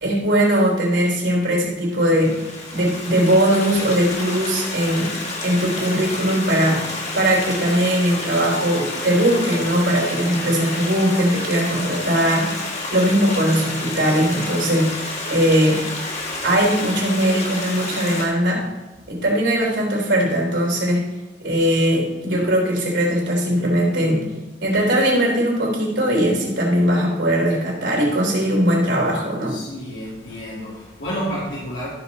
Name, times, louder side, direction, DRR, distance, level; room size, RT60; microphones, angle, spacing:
voice 1, 0.0-2.4 2.7-5.1 5.4-15.8 16.4-18.7 19.1-21.1 21.4-24.3 24.6-29.6, equal, 75° right, -3 dB, 3.5 m, -20 dB
Stream, 1.9-18.2, left 2 dB, 40° left, 2.2 m, -30 dB
voice 2, 29.5-31.9, equal, 80° left, -7 dB, 2.8 m, -30 dB
13.5 x 6.7 x 4.2 m, 1.2 s
head